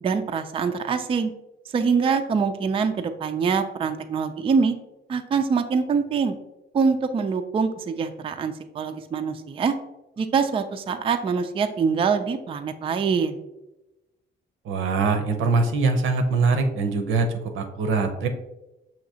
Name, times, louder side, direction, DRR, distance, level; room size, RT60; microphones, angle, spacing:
voice 1, 0.0-1.3 1.7-4.7 5.1-6.3 6.7-9.7 10.2-13.4, right 5 dB, 30° right, 7 dB, 0.3 m, -24 dB
voice 2, 14.7-17.3 17.5-18.3, right 4 dB, 80° right, 6 dB, 0.6 m, -22 dB
5.9 x 2.8 x 2.7 m, 0.96 s
cardioid pair, 90°, 20 cm